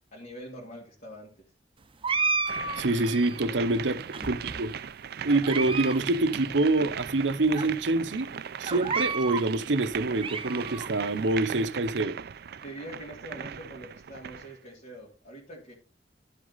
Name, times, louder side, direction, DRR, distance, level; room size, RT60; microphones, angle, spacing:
voice 1, 0.1-1.3 3.5-4.3 12.6-15.7, equal, 45° left, 2.4 m, -44 dB
sound 1, 2.0-3.5 4.1-4.8 5.3-6.0 6.3-6.4 7.1-7.2 7.5-7.7 8.7-9.5 9.9-10.9, right 4 dB, 30° right, 0.8 m, -31 dB
sound 2, 2.5-14.6, right 8 dB, 60° right, 0.5 m, -39 dB
voice 2, 2.8-4.0 4.2-4.8 5.2-8.3 8.6-12.2, right 2 dB, 85° right, 0.9 m, -26 dB
11.5 x 6.3 x 4.0 m
head